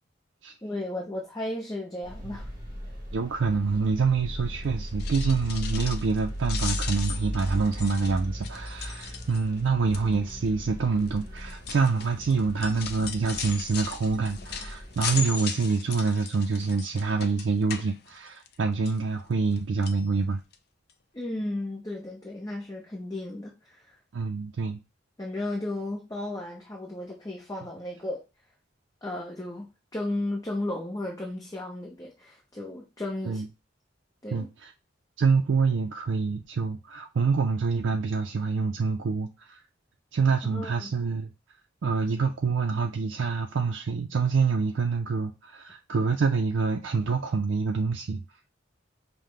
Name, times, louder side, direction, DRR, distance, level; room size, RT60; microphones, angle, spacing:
voice 1, 0.6-2.5 21.1-24.0 25.2-28.2 29.0-33.4 34.2-34.5 40.4-40.9, left 1 dB, 20° left, 0.7 m, -34 dB
sound 1, 2.0-15.2, equal, 20° right, 1.1 m, -36 dB
voice 2, 3.1-20.4 24.1-24.8 33.2-33.5 34.3-34.7 35.2-39.6 40.1-41.3 41.8-48.2, right 4 dB, 75° right, 0.4 m, -26 dB
sound 2, 4.9-6.2 6.4-9.6 9.9-10.3 11.0-18.5 18.9-19.6 19.8-20.0 20.5-20.6 20.9-21.0, left 7 dB, 55° left, 0.5 m, -38 dB
5.6 x 2.1 x 3.2 m
head